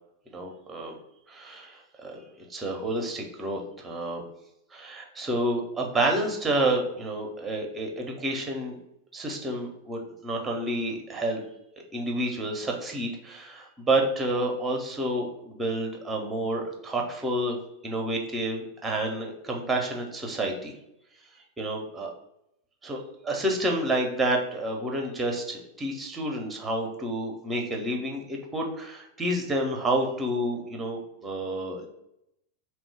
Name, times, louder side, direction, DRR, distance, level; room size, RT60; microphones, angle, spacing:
voice 1, 0.3-0.9 1.3-2.2 2.5-4.2 4.7-8.7 9.1-11.4 11.9-17.6 17.8-20.7 21.6-22.1 22.8-31.8, right 1 dB, 15° right, 1 dB, 0.6 m, -29 dB
2.9 x 2.1 x 3.2 m, 0.81 s
figure-of-eight pair, 90°, 0 cm